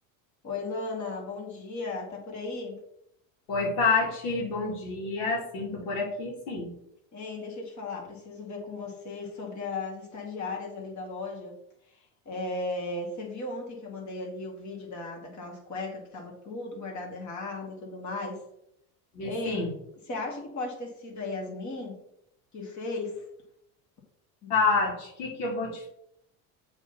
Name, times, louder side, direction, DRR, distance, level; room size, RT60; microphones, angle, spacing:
voice 1, 0.4-2.8 7.1-11.6 11.9-12.0 12.3-18.4 19.2-19.6 20.1-22.0 22.5-23.2 24.4-24.5, left 3 dB, 40° left, -1 dB, 2.6 m, -36 dB
voice 2, 3.5-6.7 19.1-19.7 24.5-25.9, left 4 dB, 90° left, -1 dB, 2.4 m, -28 dB
7.1 x 3.8 x 5.7 m, 0.76 s
supercardioid pair, 100°, 44 cm